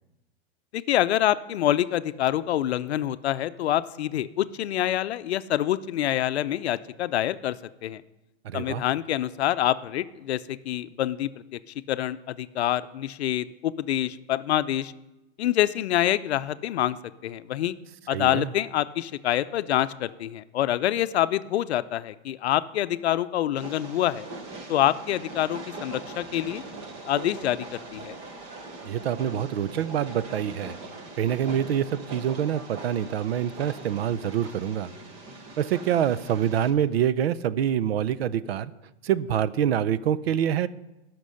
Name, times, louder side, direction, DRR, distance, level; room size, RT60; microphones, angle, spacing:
voice 1, 0.7-7.6 7.8-8.0 8.5-11.6 11.9-14.9 15.4-17.0 17.2-17.8 18.1-24.2 24.7-26.6 27.1-28.1, left 12 dB, 70° left, 14 dB, 0.6 m, -26 dB
voice 2, 8.4-8.8 18.1-18.5 28.9-30.8 31.2-34.9 35.6-38.7 39.0-40.7, right 9 dB, 65° right, 17 dB, 0.6 m, -26 dB
Train, 23.6-36.7, right 2 dB, 15° right, 0.8 m, -41 dB
15.5 x 6.1 x 6.4 m, 0.99 s
supercardioid pair, 170°, 33 cm